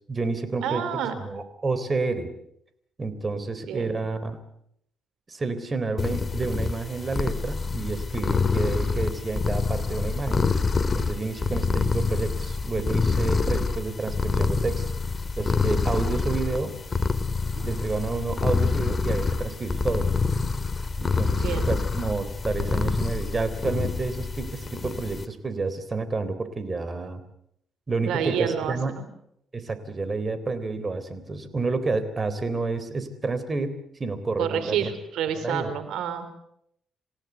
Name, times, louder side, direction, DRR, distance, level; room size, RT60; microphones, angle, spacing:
voice 1, 0.1-0.8 1.1-2.3 3.0-4.4 5.3-10.4 10.9-14.8 15.4-16.8 17.6-20.1 21.0-27.2 27.9-28.9 29.5-34.9 35.4-35.7, right 3 dB, 30° right, 12 dB, 3.5 m, -29 dB
voice 2, 0.6-1.2 3.7-4.0 17.6-17.7 21.2-21.7 28.0-29.1 34.4-36.4, right 8 dB, 85° right, 11 dB, 3.9 m, -29 dB
sound 1, 6.0-25.2, left 4 dB, 30° left, 1.9 m, -26 dB
28.0 x 16.5 x 8.2 m, 0.74 s
cardioid pair, 90°, 0 cm